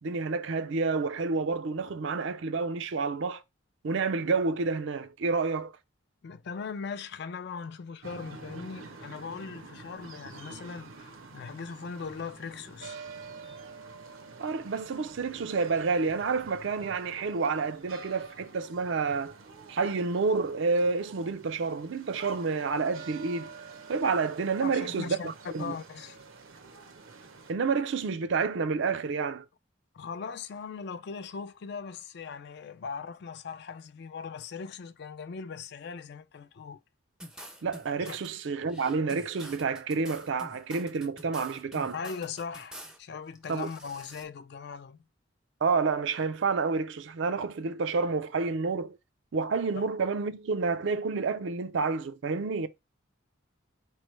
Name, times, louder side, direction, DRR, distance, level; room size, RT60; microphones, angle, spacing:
voice 1, 0.0-3.4 3.8-5.7 14.4-19.4 19.7-23.5 23.9-25.7 27.5-29.4 37.6-42.0 43.5-43.7 45.6-49.0 49.3-52.7, right 4 dB, 65° right, 0.4 m, -29 dB
voice 2, 6.2-13.0 24.6-25.3 25.6-26.2 29.9-36.8 38.0-38.2 41.9-45.0 49.8-49.9, left 5 dB, 55° left, 0.4 m, -39 dB
sound 1, 8.0-27.5, right 4 dB, 80° right, 0.8 m, -48 dB
sound 2, 37.2-38.3 38.7-43.0 43.3-44.2, right 1 dB, 5° right, 0.5 m, -47 dB
4.5 x 3.1 x 3.1 m
head